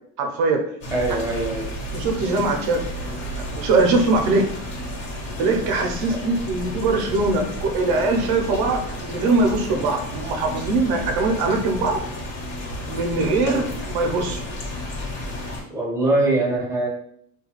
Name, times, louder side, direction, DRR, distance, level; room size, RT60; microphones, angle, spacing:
voice 1, 0.2-0.6 1.9-2.8 3.3-4.5 5.4-12.0 12.9-14.4, right 3 dB, 60° right, 3 dB, 0.7 m, -22 dB
sound 1, 0.8-15.6, left 1 dB, 55° left, 1.1 m, -32 dB
voice 2, 0.9-1.7 6.1-6.2 15.7-16.9, right 2 dB, 5° right, -3 dB, 0.6 m, -22 dB
2.7 x 2.3 x 2.8 m, 0.67 s
cardioid pair, 150°, 40 cm